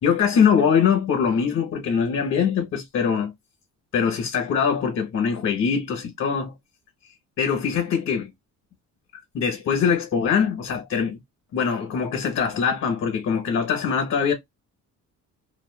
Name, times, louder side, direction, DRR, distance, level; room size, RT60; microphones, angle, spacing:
voice 1, 0.0-3.3 3.9-6.5 7.4-8.3 9.3-11.2 11.5-14.3, left 6 dB, 50° left, 1.0 m, -22 dB
2.5 x 2.2 x 2.2 m
cardioid pair, 145°, 33 cm